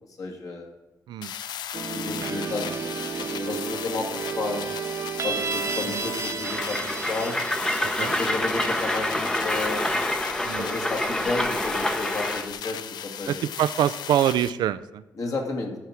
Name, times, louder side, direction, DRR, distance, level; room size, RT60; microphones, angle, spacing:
voice 1, 0.2-0.7 1.9-4.8 5.2-7.4 8.0-9.9 10.6-13.4 15.2-15.8, left 3 dB, 50° left, 2 dB, 2.0 m, -32 dB
sound 1, 1.2-14.5, left 10 dB, 75° left, 0.4 m, -37 dB
sound 2, 1.7-10.6, right 6 dB, 40° right, 0.6 m, -33 dB
Train, 6.4-12.5, left 1 dB, 10° left, 0.8 m, -27 dB
voice 2, 7.8-8.1 10.5-10.7 13.3-15.0, right 11 dB, 80° right, 16 dB, 0.4 m, -25 dB
13.0 x 4.8 x 5.7 m, 1.1 s
cardioid pair, 115°, 7 cm